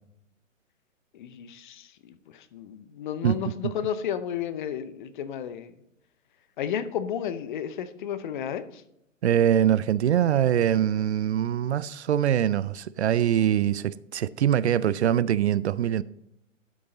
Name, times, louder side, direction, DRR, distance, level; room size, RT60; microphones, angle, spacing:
voice 1, 1.1-5.7 6.6-8.8, left 9 dB, 40° left, 0.8 m, -33 dB
voice 2, 3.2-3.7 9.2-16.0, right 10 dB, 60° right, 0.5 m, -23 dB
12.0 x 6.4 x 4.0 m
figure-of-eight pair, 125°, 39 cm